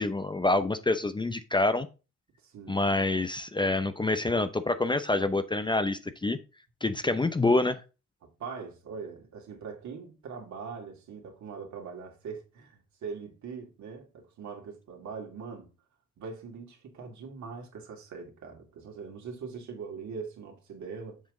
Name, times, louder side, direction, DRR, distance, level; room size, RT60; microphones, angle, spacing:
voice 1, 0.0-1.9 2.7-6.4 6.8-7.8, left 2 dB, 15° left, 0.6 m, -27 dB
voice 2, 2.4-2.8 8.4-15.7 16.2-21.2, right 5 dB, 70° right, 2.5 m, -42 dB
7.2 x 6.1 x 3.8 m
cardioid pair, 90°, 30 cm